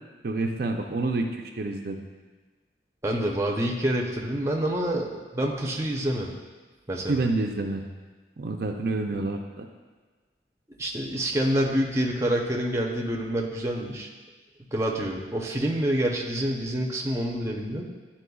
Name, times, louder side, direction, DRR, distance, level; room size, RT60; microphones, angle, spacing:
voice 1, 0.2-2.0 7.1-7.8 8.4-9.7, right 2 dB, 60° right, 3 dB, 0.5 m, -28 dB
voice 2, 3.0-6.3 6.9-7.3 10.8-14.1 14.7-17.8, right 1 dB, 15° right, -1 dB, 0.6 m, -27 dB
11.0 x 4.3 x 2.3 m, 1.4 s
head